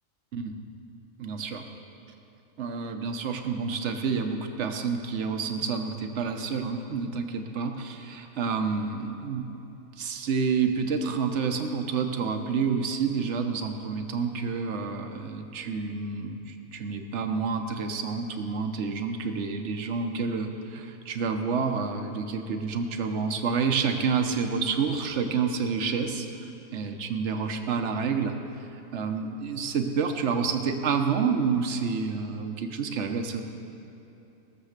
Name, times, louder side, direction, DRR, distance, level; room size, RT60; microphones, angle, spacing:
voice 1, 1.2-1.6 2.6-9.5 10.0-26.3 26.7-28.4 28.9-33.4, right 5 dB, 55° right, 6 dB, 1.1 m, -29 dB
17.0 x 7.0 x 6.6 m, 2.9 s
omnidirectional pair, 1.5 m